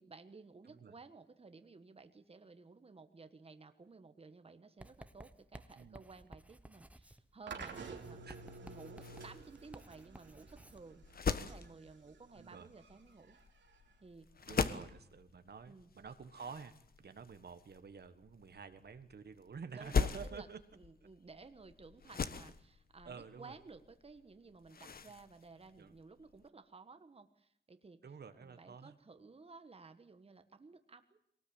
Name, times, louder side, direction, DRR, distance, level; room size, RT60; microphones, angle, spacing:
voice 1, 0.0-8.2 8.6-11.0 11.4-13.4 14.0-14.3 14.6-14.9 15.6-15.9 19.7-28.0 28.4-31.2, right 4 dB, 30° right, 8 dB, 1.4 m, -56 dB
Writing, 4.8-10.9, right 1 dB, 5° right, 1.1 m, -56 dB
sound 1, 7.5-14.5, right 4 dB, 80° right, 3.1 m, -52 dB
sound 2, 8.9-26.5, left 5 dB, 55° left, 1.3 m, -42 dB
voice 2, 12.4-12.7 14.5-20.6 23.0-23.6 25.8-25.9 28.0-29.0, right 6 dB, 60° right, 10 dB, 1.6 m, -50 dB
22.5 x 18.5 x 8.9 m, 0.69 s
wide cardioid pair, 115°, 19 cm